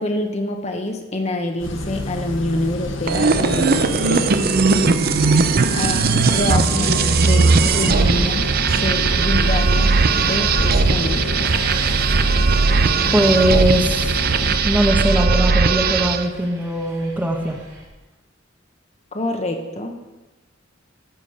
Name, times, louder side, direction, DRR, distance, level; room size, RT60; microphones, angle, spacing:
voice 1, 0.0-4.3 5.7-11.3 19.1-20.0, left 1 dB, 35° left, 4 dB, 1.1 m, -26 dB
sound 1, 1.6-14.6, left 2 dB, 75° left, 1.1 m, -27 dB
sound 2, 3.1-16.3, right 4 dB, 50° right, 0.6 m, -18 dB
Car / Engine starting, 11.4-17.9, right 1 dB, 80° right, 3.5 m, -38 dB
voice 2, 13.1-14.2 14.6-17.6, right 1 dB, 10° right, 2 dB, 1.1 m, -20 dB
13.5 x 5.2 x 6.5 m, 1.1 s
head